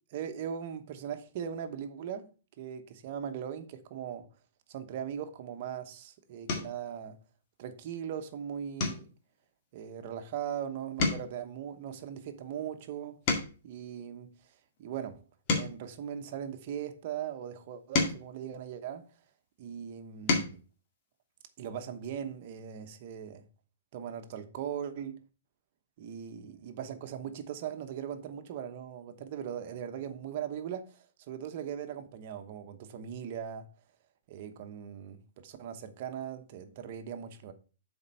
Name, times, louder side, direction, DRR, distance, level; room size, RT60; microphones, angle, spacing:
voice 1, 0.1-2.3 2.6-4.3 4.7-7.2 7.6-9.1 9.7-13.2 13.6-14.5 14.8-15.2 15.5-19.1 19.6-20.6 21.6-23.5 23.9-25.2 26.0-33.7 34.3-37.5, right 8 dB, 45° right, 1.0 m, -39 dB
sound 1, 5.6-5.9 6.4-6.9 7.4-7.7 8.0-8.2 8.7-10.6 10.9-13.8 14.4-16.9 17.5-19.4 19.9-20.6 22.0-22.1 22.4-22.6, left 3 dB, 35° left, 1.9 m, -35 dB
7.1 x 4.4 x 5.5 m
hypercardioid pair, 155°, 0 cm